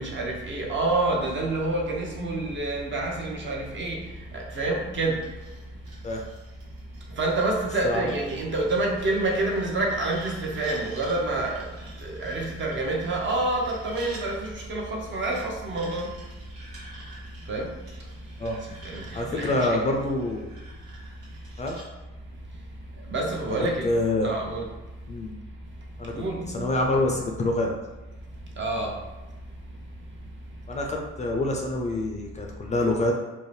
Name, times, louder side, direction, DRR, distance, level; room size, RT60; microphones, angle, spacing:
voice 1, 0.0-4.0 4.3-5.2 7.2-11.7 12.0-16.1 17.5-17.7 18.8-19.8 23.1-23.9 24.2-24.7 26.1-26.6 28.6-28.9, right 2 dB, 40° right, 0 dB, 0.7 m, -28 dB
sound 1, 5.2-14.2 15.2-21.9, right 2 dB, 80° right, 1.1 m, -49 dB
voice 2, 7.8-8.1 18.4-18.6 19.1-20.5 21.6-21.8 23.4-23.6 23.8-24.3 25.1-25.3 26.0-27.7 30.7-33.1, left 2 dB, 25° left, 0 dB, 0.4 m, -26 dB
2.6 x 2.0 x 3.2 m, 1.1 s
supercardioid pair, 75°, 29 cm